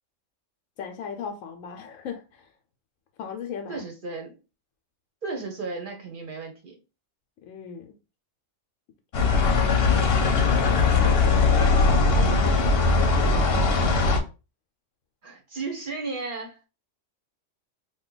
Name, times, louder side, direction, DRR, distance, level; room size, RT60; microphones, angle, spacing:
voice 1, 0.8-2.5 3.2-3.8 7.4-8.0 11.0-13.7, left 7 dB, 90° left, 1.0 m, -38 dB
voice 2, 3.7-4.4 5.2-6.8 15.2-16.6, right 3 dB, 50° right, 0.7 m, -34 dB
sound 1, 9.1-14.2, left 4 dB, 55° left, 0.8 m, -20 dB
2.7 x 2.2 x 3.8 m
omnidirectional pair, 1.3 m